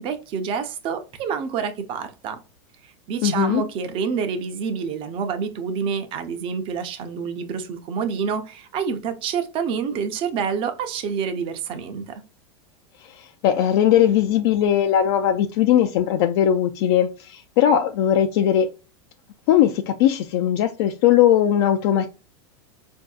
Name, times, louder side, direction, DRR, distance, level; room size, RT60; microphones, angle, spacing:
voice 1, 0.0-2.4 2.8-12.2, right 6 dB, 35° right, 0.6 m, -27 dB
voice 2, 3.2-3.6 13.2-18.7 19.5-22.1, left 10 dB, 55° left, 0.4 m, -19 dB
4.4 x 2.6 x 2.3 m
supercardioid pair, 145°, 16 cm